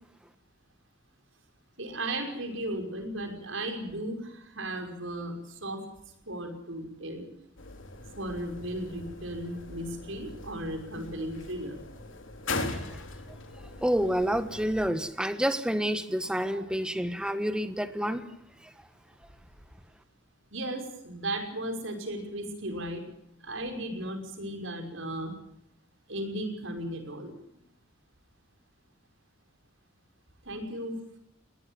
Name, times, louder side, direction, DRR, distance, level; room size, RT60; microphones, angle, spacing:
voice 1, 1.8-5.8 6.3-7.3 8.2-11.8 16.5-16.7 20.5-23.1 23.4-25.3 26.1-27.3 30.5-31.0, right 1 dB, 70° right, 5 dB, 5.7 m, -35 dB
sound 1, 7.6-14.9, left 3 dB, 70° left, 3.2 m, -40 dB
voice 2, 13.8-18.3 18.6-18.7, equal, 5° right, 11 dB, 1.5 m, -29 dB
21.0 x 19.5 x 9.2 m, 0.79 s
head